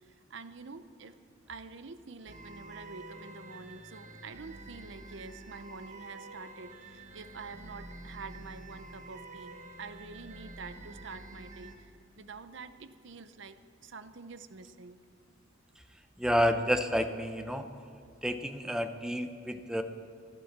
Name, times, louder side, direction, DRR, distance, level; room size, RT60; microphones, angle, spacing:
voice 1, 0.1-1.2 1.5-11.9 12.2-15.0, right 4 dB, 60° right, 11 dB, 0.7 m, -47 dB
sound 1, 2.3-11.8, right 2 dB, 40° right, 1.4 m, -48 dB
voice 2, 16.2-17.7 18.2-19.8, equal, 5° right, 7 dB, 0.7 m, -30 dB
15.5 x 11.5 x 7.3 m, 2.5 s
head